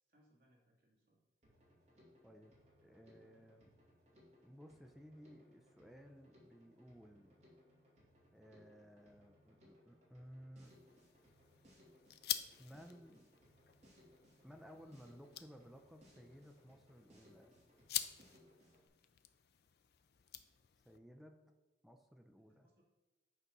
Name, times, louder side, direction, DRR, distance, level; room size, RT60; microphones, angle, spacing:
voice 1, 0.1-1.2 22.6-22.8, equal, 60° right, -4 dB, 2.3 m, -73 dB
Drum kit, 1.4-18.9, left 1 dB, 40° right, 2.5 m, -67 dB
voice 2, 2.2-2.6 2.8-3.7 4.4-7.4 8.3-10.7 12.6-13.3 14.4-17.5 20.8-21.4 21.8-22.7, equal, ahead, 4 dB, 0.5 m, -58 dB
sound 1, 10.6-21.0, left 11 dB, 65° left, 0.4 m, -48 dB
8.2 x 4.1 x 6.0 m, 1.1 s
head